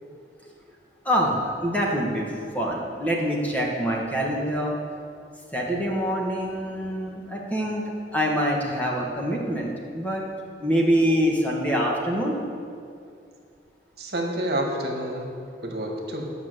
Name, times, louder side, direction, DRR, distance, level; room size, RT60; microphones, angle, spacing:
voice 1, 1.0-4.7 5.5-7.8 8.1-10.2 10.6-12.3, equal, 10° left, -2 dB, 1.3 m, -25 dB
voice 2, 14.0-16.3, right 1 dB, 60° right, 1 dB, 1.5 m, -29 dB
10.5 x 5.9 x 7.8 m, 2.3 s
head